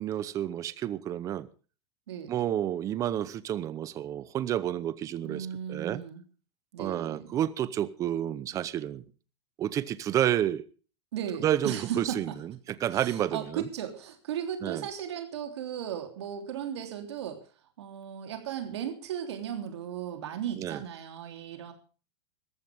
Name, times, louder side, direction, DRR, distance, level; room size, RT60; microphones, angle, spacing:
voice 1, 0.0-1.5 2.3-6.0 6.8-9.0 9.6-10.6 11.4-12.5 12.8-13.7 14.6-14.8 20.6-20.8, right 11 dB, 25° right, 0.8 m, -30 dB
voice 2, 2.1-2.4 5.2-6.2 6.7-7.3 11.1-12.3 12.9-17.4 17.8-21.7, right 9 dB, 80° right, 3.3 m, -36 dB
20.0 x 14.5 x 3.6 m
supercardioid pair, 160°, 14 cm